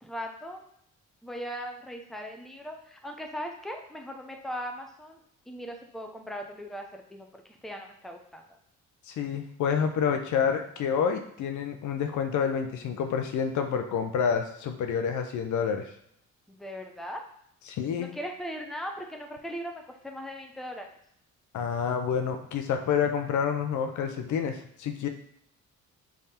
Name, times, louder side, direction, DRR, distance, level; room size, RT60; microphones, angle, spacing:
voice 1, 0.0-0.6 1.2-5.2 5.5-8.4 16.5-17.2 18.0-21.0, equal, ahead, 2 dB, 0.7 m, -39 dB
voice 2, 9.1-15.9 17.7-18.1 21.5-25.1, left 7 dB, 70° left, 6 dB, 0.6 m, -28 dB
3.6 x 3.4 x 4.2 m, 0.72 s
cardioid pair, 90°, 30 cm